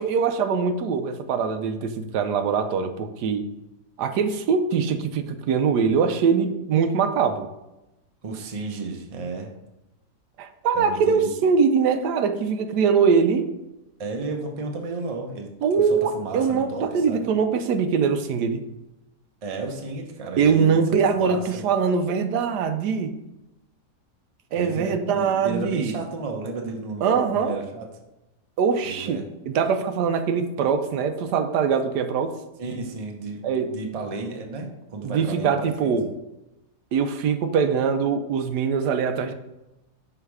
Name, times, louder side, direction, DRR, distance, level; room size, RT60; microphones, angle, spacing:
voice 1, 0.0-3.5 4.0-7.5 10.4-13.5 15.6-18.6 20.4-23.1 24.5-26.0 27.0-27.5 28.6-32.3 33.4-33.7 35.0-36.1 36.9-39.3, right 6 dB, 80° right, 8 dB, 1.2 m, -22 dB
voice 2, 8.2-9.5 10.7-11.3 14.0-15.5 16.1-17.3 19.4-20.8 21.1-21.6 24.5-27.9 28.8-29.3 32.6-35.9, right 3 dB, 35° right, 2 dB, 0.6 m, -33 dB
5.6 x 3.9 x 4.7 m, 0.96 s
omnidirectional pair, 1.7 m